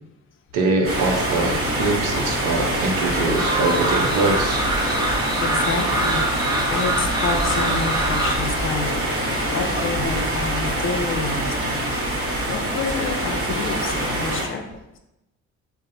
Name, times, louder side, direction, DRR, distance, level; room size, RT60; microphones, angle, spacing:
voice 1, 0.5-4.6, right 3 dB, 85° right, 2 dB, 0.6 m, -23 dB
sound 1, 0.8-14.4, right 1 dB, 45° right, 1.1 m, -24 dB
sound 2, 3.3-8.4, right 1 dB, 15° right, 0.5 m, -25 dB
voice 2, 5.4-8.9 9.5-11.8 12.4-14.6, left 4 dB, 45° left, 5 dB, 0.4 m, -28 dB
3.9 x 2.0 x 2.6 m, 0.92 s
cardioid pair, 90°, 30 cm